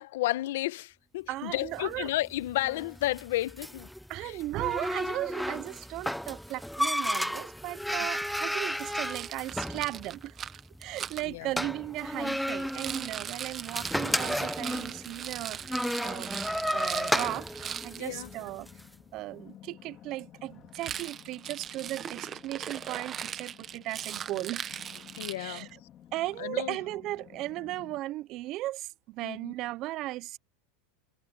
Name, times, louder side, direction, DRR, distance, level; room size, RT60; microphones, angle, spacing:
voice 1, 0.0-3.9 4.2-4.4 11.2-11.5 18.0-18.3 25.2-25.7 26.4-26.8 29.2-29.5, left 16 dB, 75° left, 1.0 m, -32 dB
voice 2, 1.3-2.1 4.1-10.4 10.8-16.4 16.7-17.5 17.8-18.7 19.1-24.7 25.4-25.7 26.1-30.4, right 17 dB, 40° right, 0.6 m, -36 dB
sound 1, 1.6-18.8, equal, ahead, 0.7 m, -34 dB
Rattle, 8.7-11.2 12.6-18.0 20.7-25.7, right 9 dB, 25° right, 1.2 m, -39 dB
sound 2, 10.9-28.0, left 11 dB, 30° left, 3.4 m, -55 dB
supercardioid pair, 150°, 0 cm